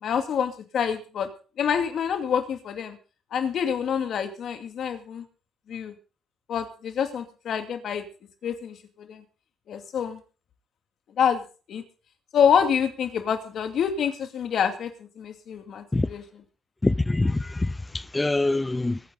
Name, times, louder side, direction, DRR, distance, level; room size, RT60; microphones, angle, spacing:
voice 1, 0.0-1.3 1.6-3.0 3.3-5.2 5.7-5.9 6.5-8.0 8.4-9.2 9.7-10.2 11.2-11.4 11.7-11.8 12.3-16.2, left 7 dB, 65° left, 2.5 m, -26 dB
voice 2, 16.8-19.0, left 2 dB, 15° left, 0.6 m, -24 dB
23.0 x 9.7 x 4.0 m
cardioid pair, 90°, 0 cm